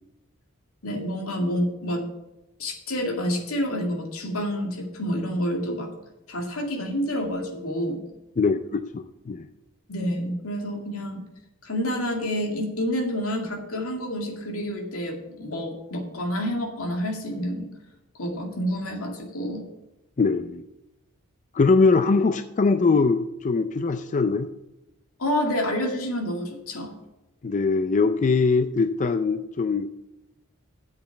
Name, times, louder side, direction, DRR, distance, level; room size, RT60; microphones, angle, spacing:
voice 1, 0.8-2.0 2.6-5.9 6.3-8.0 9.9-11.2 11.6-17.7 18.2-19.6 25.2-26.9, equal, 85° left, 3 dB, 2.2 m, -28 dB
voice 2, 8.4-9.5 20.2-20.6 21.5-24.5 27.4-29.9, left 4 dB, 35° left, 10 dB, 0.4 m, -22 dB
7.9 x 7.0 x 7.1 m, 0.96 s
head